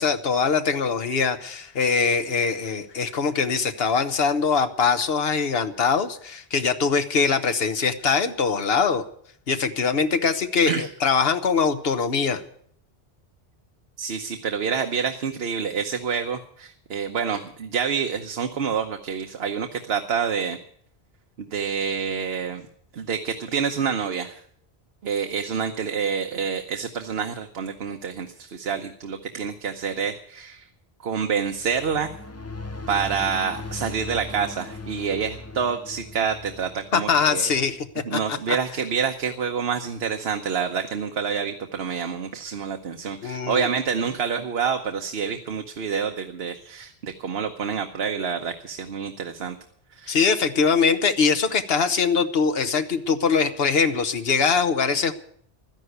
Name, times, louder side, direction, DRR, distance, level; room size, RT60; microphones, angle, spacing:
voice 1, 0.0-9.0 9.5-12.4 36.9-37.9 38.1-38.6 43.2-43.7 50.1-55.1, left 5 dB, 70° left, 9 dB, 1.2 m, -22 dB
voice 2, 14.0-20.6 21.4-22.6 22.9-24.4 25.0-30.7 31.0-32.1 32.9-37.5 38.0-49.6 49.9-50.2, right 6 dB, 70° right, 6 dB, 1.1 m, -27 dB
sound 1, 31.4-38.0, left 3 dB, 20° left, 0.5 m, -39 dB
12.5 x 10.5 x 8.0 m, 0.63 s
omnidirectional pair, 1.1 m